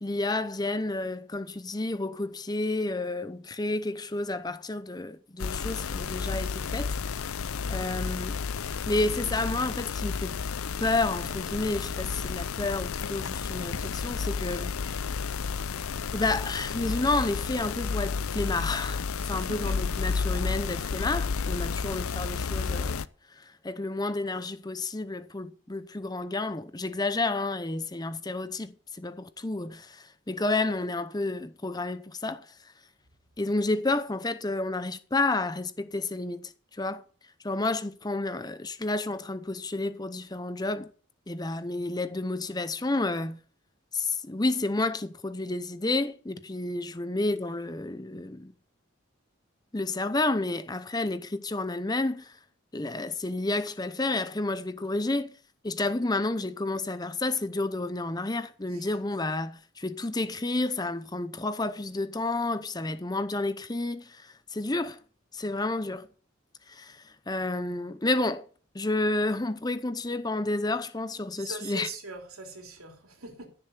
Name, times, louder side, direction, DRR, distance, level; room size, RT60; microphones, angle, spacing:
voice 1, 0.0-7.3 7.7-10.4 10.8-14.9 16.1-23.0 23.3-32.5 33.4-36.5 36.8-37.0 37.4-40.9 41.3-43.4 43.9-48.5 49.7-52.4 52.7-55.4 55.6-65.0 65.3-66.1 66.7-68.5 68.7-71.9, left 2 dB, 20° left, 0.7 m, -30 dB
sound 1, 5.4-23.1, left 5 dB, 85° left, 0.6 m, -31 dB
voice 2, 19.2-19.8 71.4-73.5, right 2 dB, 90° right, 3.2 m, -42 dB
14.5 x 7.0 x 6.9 m
head